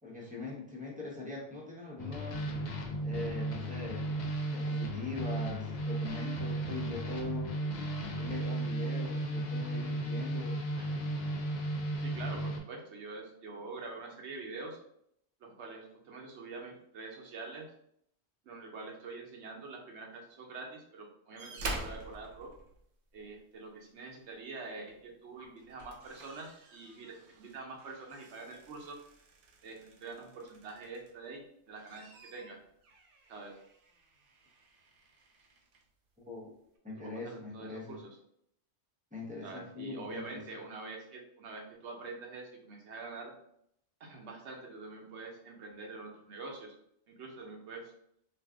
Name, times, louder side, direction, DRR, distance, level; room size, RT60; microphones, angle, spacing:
voice 1, 0.0-2.5 3.0-4.2 4.5-7.5 8.2-10.6 36.2-36.5 36.8-38.0 39.1-40.4, left 3 dB, 10° right, -5 dB, 0.8 m, -42 dB
sound 1, 2.0-12.6, right 1 dB, 55° left, 0.5 m, -35 dB
voice 2, 12.0-14.8 15.4-17.7 18.4-22.5 23.1-29.0 29.6-32.6 33.3-33.6 37.0-38.1 39.4-43.3 44.0-46.7 47.1-47.9, right 3 dB, 80° right, 1 dB, 1.0 m, -45 dB
sound 2, 21.4-23.4 24.9-25.1 25.5-31.3 31.7-35.9 36.8-36.9, right 2 dB, 60° right, 0.7 m, -47 dB
2.6 x 2.4 x 3.4 m, 0.72 s
omnidirectional pair, 1.1 m